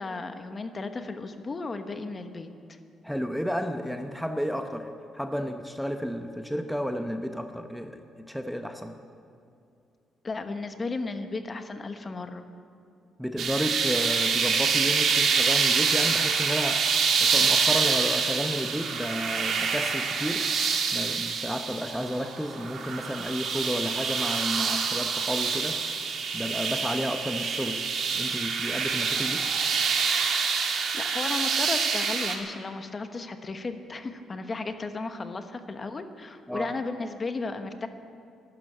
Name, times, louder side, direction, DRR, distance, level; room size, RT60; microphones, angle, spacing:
voice 1, 0.0-2.8 10.2-12.4 30.9-37.9, left 3 dB, 35° left, 8 dB, 1.2 m, -34 dB
voice 2, 3.0-9.0 13.2-16.9 17.2-20.5 20.9-25.8 26.3-29.5 36.5-36.7, equal, ahead, 6 dB, 0.8 m, -32 dB
sound 1, 13.4-32.3, right 5 dB, 65° right, 1.9 m, -26 dB
12.5 x 12.0 x 9.0 m, 2.5 s
cardioid pair, 90°, 0 cm